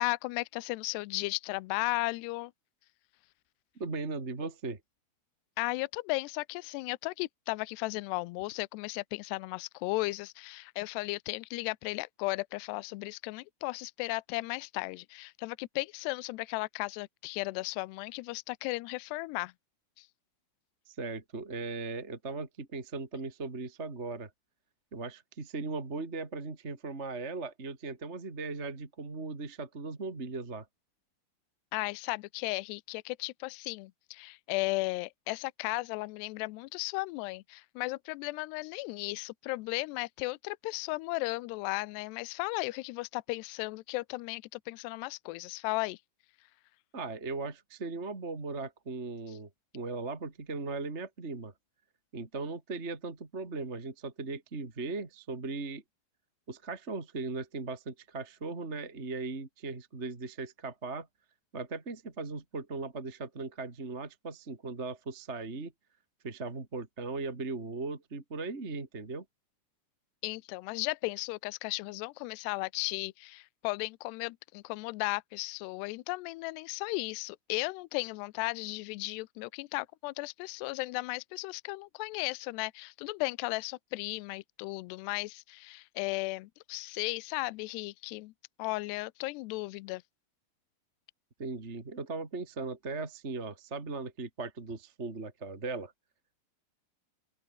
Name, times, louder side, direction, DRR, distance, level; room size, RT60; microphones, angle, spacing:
voice 1, 0.0-2.5 5.6-19.5 20.0-20.1 31.7-46.0 70.2-88.3 88.6-90.0, left 23 dB, 85° left, 2.5 m, -35 dB
voice 2, 3.8-4.8 20.9-24.3 24.9-30.7 46.9-51.5 52.1-55.8 56.5-61.1 61.5-65.7 66.2-69.2 91.4-95.9, right 3 dB, 20° right, 1.9 m, -38 dB
open air
omnidirectional pair, 5.4 m